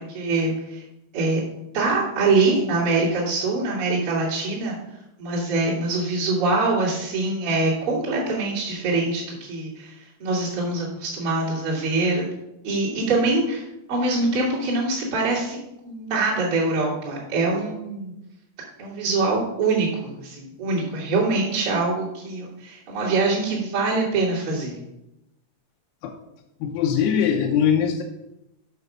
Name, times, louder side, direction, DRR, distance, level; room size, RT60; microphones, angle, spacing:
voice 1, 0.1-0.8 1.1-1.4 1.7-4.8 5.2-9.9 10.2-12.2 12.6-15.6 15.8-18.1 18.8-24.8, right 3 dB, 40° right, -8 dB, 2.2 m, -24 dB
voice 2, 26.6-28.0, left 8 dB, 85° left, 1 dB, 3.5 m, -21 dB
8.0 x 6.1 x 5.5 m, 0.88 s
omnidirectional pair, 6.0 m